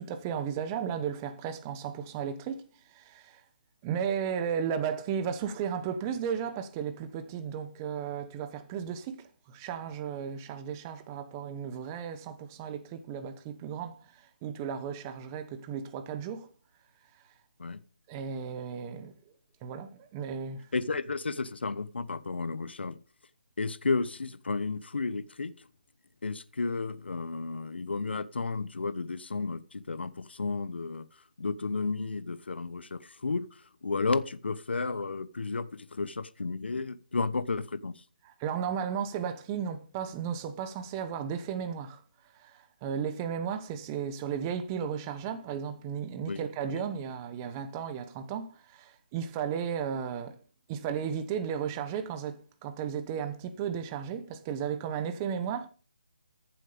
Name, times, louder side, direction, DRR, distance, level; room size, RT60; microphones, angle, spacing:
voice 1, 0.0-2.7 2.9-3.4 3.8-13.9 14.4-16.5 18.1-19.1 19.6-20.7 38.4-42.0 42.4-50.4 50.7-55.7, right 7 dB, 15° right, 0.9 m, -34 dB
voice 2, 20.7-23.0 23.6-25.7 26.2-31.1 31.4-38.0 46.3-46.8, left 4 dB, 75° left, 1.0 m, -33 dB
14.5 x 7.7 x 5.1 m
hypercardioid pair, 165°, 6 cm